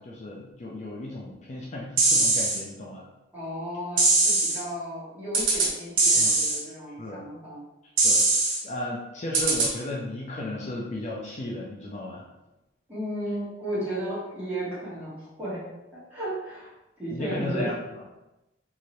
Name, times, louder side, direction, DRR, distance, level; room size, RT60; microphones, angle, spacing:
voice 1, 0.0-3.0 6.1-6.3 7.0-7.2 7.8-8.2 8.6-12.2 17.1-17.7, left 1 dB, 40° left, -4 dB, 0.4 m, -34 dB
sound 1, 2.0-2.6 4.0-4.6 5.3-5.7 6.0-6.6 8.0-8.6 9.3-9.7, right 3 dB, 90° right, 0.7 m, -21 dB
voice 2, 3.3-7.6 12.9-15.6 15.9-16.7 17.0-17.7, right 1 dB, 10° right, -11 dB, 1.5 m, -34 dB
2.7 x 2.6 x 3.0 m, 0.98 s
head